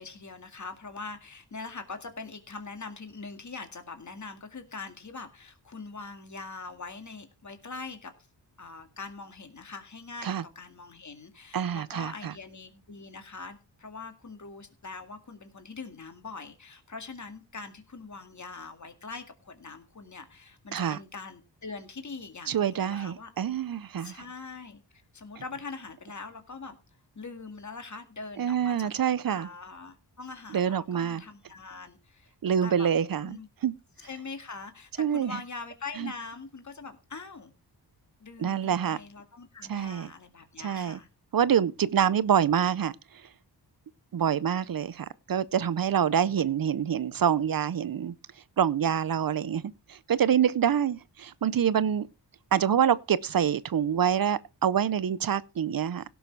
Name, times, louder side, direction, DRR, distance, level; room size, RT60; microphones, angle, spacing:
voice 1, 0.0-8.1 8.6-23.3 24.0-26.8 27.2-28.9 29.3-32.3 32.6-32.9 33.2-33.5 34.0-37.5 38.2-41.1, left 4 dB, 40° left, 2.0 m, -43 dB
voice 2, 11.5-12.3 20.7-21.0 22.5-24.1 28.4-29.5 30.5-31.2 32.4-33.8 35.0-35.4 36.0-36.1 38.4-39.0 39.7-40.1 40.6-41.0 41.3-43.0 44.1-48.1 48.6-49.6 49.9-52.1 52.5-56.0, right 8 dB, 55° right, 0.6 m, -26 dB
17.0 x 6.3 x 4.6 m
wide cardioid pair, 120°, 42 cm